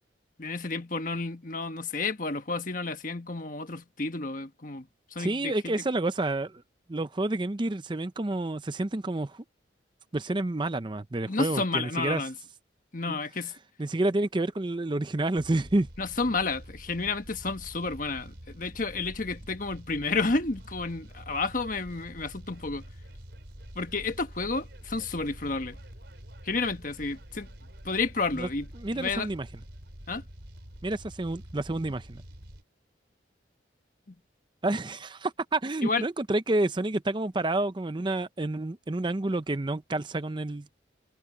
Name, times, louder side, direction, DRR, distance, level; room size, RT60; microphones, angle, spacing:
voice 1, 0.4-5.8 11.3-12.3 12.9-13.5 16.0-22.9 23.7-25.8 26.4-27.5 27.8-29.3 30.1-30.2 34.1-34.2 35.8-36.0, left 3 dB, 45° left, 1.4 m, -31 dB
voice 2, 5.2-6.6 6.9-9.4 10.1-12.2 13.8-15.9 28.3-28.5 28.8-29.5 30.8-32.2 34.6-40.7, right 2 dB, 25° right, 0.5 m, -29 dB
sound 1, 15.3-32.6, equal, 65° right, 4.3 m, -47 dB
head